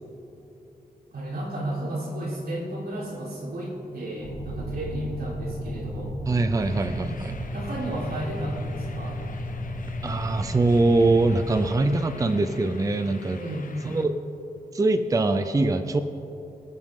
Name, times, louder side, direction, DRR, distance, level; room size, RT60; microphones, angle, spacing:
voice 1, 1.1-6.2 7.5-9.2 13.4-13.7, right 1 dB, 90° right, -4 dB, 3.7 m, -33 dB
sound 1, 4.2-11.4, equal, 5° left, 2.7 m, -34 dB
voice 2, 6.3-7.4 10.0-13.4 13.8-14.2 14.7-16.0, right 2 dB, 20° right, 8 dB, 0.5 m, -23 dB
sound 2, 6.3-13.3, equal, 45° right, 3.8 m, -46 dB
sound 3, 6.6-14.1, left 5 dB, 60° left, 0.9 m, -48 dB
26.5 x 9.6 x 3.7 m, 3.0 s
wide cardioid pair, 175°, 15 cm